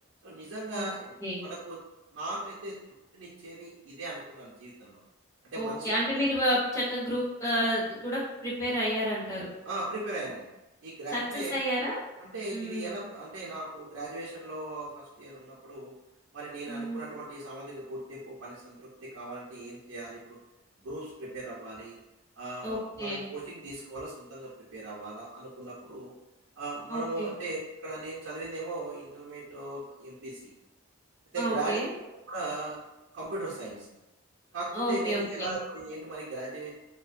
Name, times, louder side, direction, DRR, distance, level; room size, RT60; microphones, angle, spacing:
voice 1, 0.2-1.8 2.1-2.7 3.1-5.0 5.4-5.9 9.6-10.5 10.8-11.6 12.2-15.9 16.3-20.4 20.8-22.0 22.4-26.1 26.6-30.5 31.3-31.8 32.3-32.8 33.1-33.9 34.5-36.7, right 2 dB, 85° right, -7 dB, 0.5 m, -38 dB
voice 2, 5.5-9.5 11.1-12.0 12.5-12.9 16.7-17.0 22.6-23.2 26.9-27.3 31.4-31.9 34.7-35.5, equal, 15° left, -6 dB, 0.6 m, -30 dB
2.6 x 2.1 x 2.5 m, 0.99 s
head